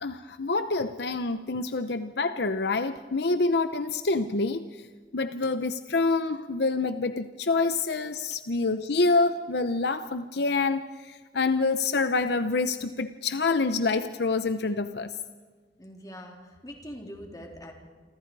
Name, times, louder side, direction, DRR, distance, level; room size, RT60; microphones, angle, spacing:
voice 1, 0.0-4.7 5.1-15.1, left 3 dB, 65° left, 10 dB, 0.8 m, -27 dB
voice 2, 15.8-17.7, equal, 20° left, 1 dB, 3.7 m, -43 dB
29.0 x 25.0 x 4.8 m, 1.5 s
head